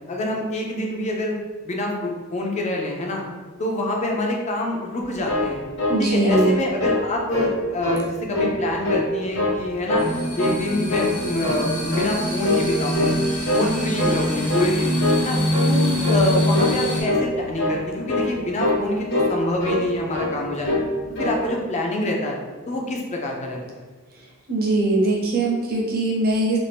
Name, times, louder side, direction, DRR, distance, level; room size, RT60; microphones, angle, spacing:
voice 1, 0.1-1.4 1.7-3.2 3.6-5.6 6.0-10.0 10.4-13.2 13.5-14.9 15.2-15.4 15.7-20.8 21.2-22.4 22.7-23.6, left 1 dB, 30° left, 0 dB, 0.4 m, -26 dB
sound 1, 5.0-6.5 6.8-7.1 7.3-8.0 8.3-9.1 9.4-10.1 10.4-10.6 10.9-11.7 11.9-12.2 12.4-12.7 12.9-13.7 14.0-14.2 14.5-14.7 15.0-15.3 15.5-15.8 16.0-16.2 16.5-16.8 17.0-17.3 17.5-17.8 18.1-18.3 18.6-18.8 19.1-19.9 20.1-20.3 20.6-20.9 21.2-21.4, left 2 dB, 55° left, 0.8 m, -23 dB
voice 2, 5.9-6.5 24.5-26.6, right 2 dB, 45° right, -3 dB, 0.7 m, -21 dB
sound 2, 10.0-17.0, equal, 80° left, 1.1 m, -24 dB
2.6 x 2.4 x 3.4 m, 1.4 s
head